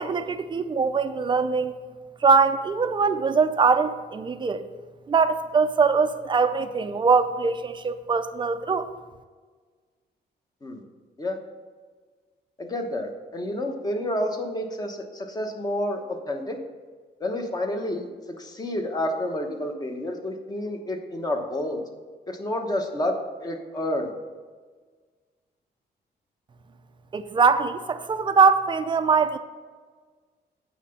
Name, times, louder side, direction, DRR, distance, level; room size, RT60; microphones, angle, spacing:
voice 1, 0.0-1.7 2.2-4.7 5.1-8.9 27.1-29.4, right 5 dB, 25° right, 10 dB, 0.5 m, -22 dB
voice 2, 12.6-16.6 17.2-18.1 18.4-21.8 22.3-24.1, left 1 dB, 20° left, 3 dB, 1.1 m, -29 dB
8.6 x 5.8 x 5.7 m, 1.5 s
wide cardioid pair, 165°, 17 cm